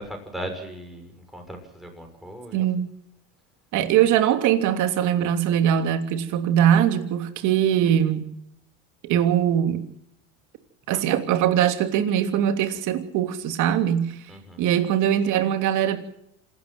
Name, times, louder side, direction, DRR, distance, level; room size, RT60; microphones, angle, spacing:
voice 1, 0.0-2.6 14.3-14.7, equal, ahead, 6.6 m, -38 dB
voice 2, 2.5-2.9 3.7-8.2 9.0-9.8 10.9-14.2 14.6-16.0, right 10 dB, 50° right, 3.1 m, -21 dB
27.0 x 13.0 x 7.9 m
supercardioid pair, 140°, 38 cm